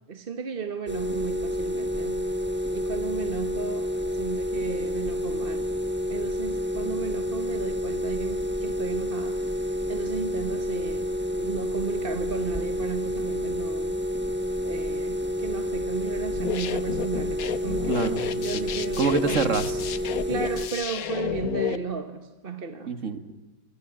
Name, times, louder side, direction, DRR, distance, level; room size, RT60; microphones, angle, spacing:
voice 1, 0.1-2.3 2.7-5.8 6.1-11.1 11.4-14.0 14.6-19.5 20.3-22.9, right 6 dB, 40° right, 9 dB, 1.3 m, -35 dB
sound 1, 0.9-20.7, left 1 dB, 5° right, 1.3 m, -29 dB
sound 2, 16.3-21.8, left 8 dB, 65° left, 1.4 m, -31 dB
voice 2, 17.9-18.7 19.0-19.8 22.9-23.3, right 5 dB, 55° right, 11 dB, 2.0 m, -27 dB
27.5 x 18.0 x 8.8 m, 1.3 s
omnidirectional pair, 1.6 m